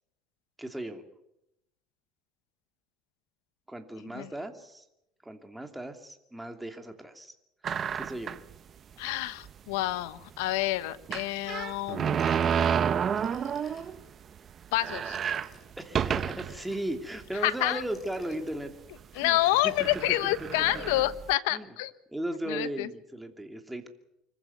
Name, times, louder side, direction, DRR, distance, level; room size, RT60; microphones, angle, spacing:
voice 1, 0.6-1.0 3.7-4.8 5.2-7.4 7.7-8.4 15.8-18.7 19.2-19.4 19.6-19.7 20.7-20.8 21.5-21.7 22.1-23.9, right 1 dB, 5° right, 5 dB, 2.8 m, -36 dB
sound 1, 7.6-8.5 9.1-9.2 9.4-9.5 11.1-14.0 14.4-14.5 14.7-16.6 17.2-17.3 18.2-18.5 19.3-19.4 19.8-21.3, right 8 dB, 35° right, 1.0 m, -30 dB
voice 2, 9.0-12.2 14.7-15.2 17.4-17.8 19.1-21.9 22.5-22.9, left 16 dB, 90° left, 16 dB, 1.1 m, -28 dB
Telephone, 12.0-14.2 15.0-17.1 17.8-18.6 19.0-20.2, left 2 dB, 30° left, 7.7 m, -55 dB
25.0 x 15.0 x 9.5 m, 0.84 s
cardioid pair, 120°, 0 cm